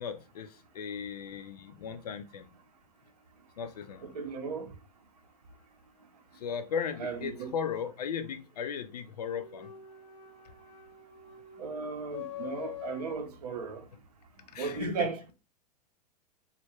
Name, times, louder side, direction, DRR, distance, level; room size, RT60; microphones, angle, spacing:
voice 1, 0.0-2.5 3.6-4.1 6.3-9.7 14.5-15.1, left 7 dB, 70° left, 0.5 m, -36 dB
voice 2, 4.0-4.8 7.0-7.5 11.6-13.9 14.5-15.3, right 5 dB, 70° right, 0.6 m, -36 dB
sound 1, 9.3-13.2, left 10 dB, 40° left, 1.0 m, -44 dB
2.2 x 2.1 x 2.8 m
figure-of-eight pair, 95°, 21 cm